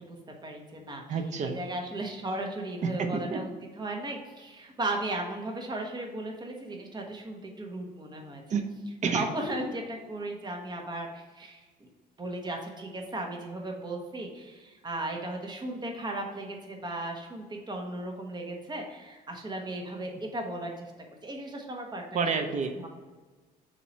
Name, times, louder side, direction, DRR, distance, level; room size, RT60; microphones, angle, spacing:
voice 1, 0.0-3.5 3.8-8.4 9.1-11.9 12.2-20.9 21.2-22.2 22.7-22.9, right 1 dB, 25° right, 2 dB, 1.3 m, -36 dB
voice 2, 1.1-1.6 2.8-3.4 8.5-8.6 9.0-9.3 22.1-22.9, right 5 dB, 45° right, 6 dB, 0.8 m, -29 dB
7.1 x 2.9 x 5.3 m, 1.3 s
cardioid pair, 110°, 17 cm